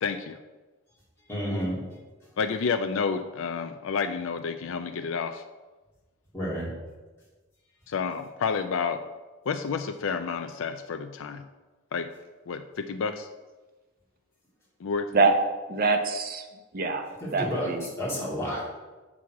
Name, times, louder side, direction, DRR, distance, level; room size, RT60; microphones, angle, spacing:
voice 1, 0.0-0.4 2.4-5.4 7.9-9.0 9.5-11.4 11.9-12.1 12.5-13.3 14.8-15.1, left 5 dB, 70° left, 7 dB, 0.4 m, -30 dB
voice 2, 1.3-1.8 6.3-6.7 17.2-18.8, equal, 15° left, -7 dB, 2.5 m, -31 dB
voice 3, 15.7-16.4 16.7-17.1 17.3-17.9, right 3 dB, 45° right, 6 dB, 0.8 m, -24 dB
7.2 x 6.2 x 4.7 m, 1.2 s
head